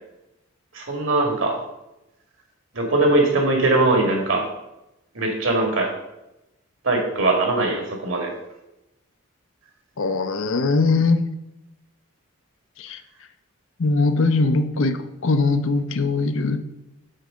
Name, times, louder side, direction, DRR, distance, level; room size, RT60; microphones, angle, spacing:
voice 1, 0.7-1.6 2.7-4.5 5.1-5.9 6.8-8.3, right 2 dB, 60° right, 2 dB, 1.9 m, -21 dB
voice 2, 10.0-11.3 12.8-13.0 13.8-16.6, left 3 dB, 65° left, 9 dB, 0.6 m, -21 dB
6.5 x 4.5 x 6.3 m, 0.91 s
head